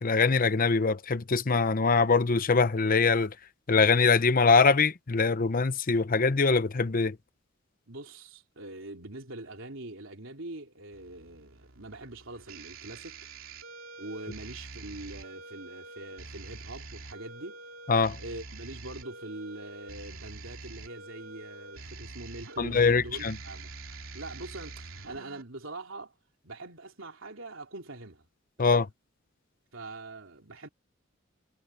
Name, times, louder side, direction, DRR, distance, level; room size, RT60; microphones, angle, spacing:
voice 1, 0.0-3.3 3.7-7.2 17.9-18.2 22.6-23.3 28.6-28.9, left 4 dB, 45° left, 0.8 m, -23 dB
voice 2, 7.9-13.2 14.0-17.6 18.2-23.7 24.1-26.1 26.4-28.3 28.6-28.9 29.7-30.7, right 2 dB, 70° right, 3.6 m, -43 dB
sound 1, 10.9-25.4, right 3 dB, 85° right, 2.9 m, -45 dB
head